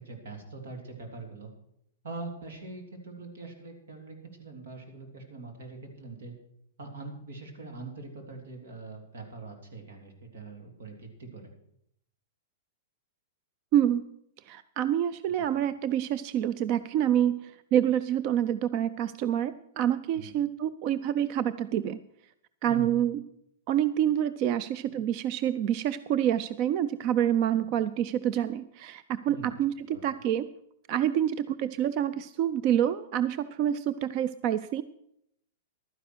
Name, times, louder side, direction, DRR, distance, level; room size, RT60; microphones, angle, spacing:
voice 1, 0.0-1.5 2.0-6.3 6.8-11.5 15.3-15.5 20.1-20.3 22.6-22.9 27.6-27.7 29.3-29.5 29.9-30.0, right 3 dB, 85° right, 4 dB, 3.3 m, -43 dB
voice 2, 13.7-14.0 14.5-22.0 22.6-23.2 23.7-30.5 30.9-34.8, right 10 dB, 35° right, 14 dB, 0.4 m, -27 dB
12.0 x 9.9 x 6.2 m, 0.74 s
supercardioid pair, 160°, 0 cm